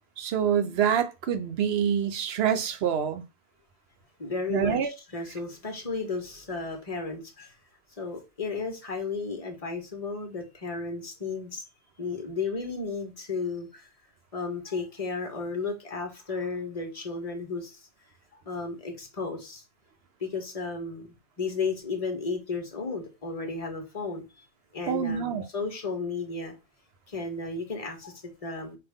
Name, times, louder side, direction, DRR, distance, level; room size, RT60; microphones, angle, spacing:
voice 1, 0.2-3.2 4.5-4.9 24.9-25.5, right 8 dB, 65° right, 0.9 m, -26 dB
voice 2, 4.2-7.5 8.0-11.6 12.0-13.9 14.3-17.9 18.4-19.6 20.2-24.4 24.7-26.5 27.1-28.8, left 4 dB, 35° left, 1.3 m, -34 dB
5.4 x 2.5 x 3.5 m
omnidirectional pair, 1.2 m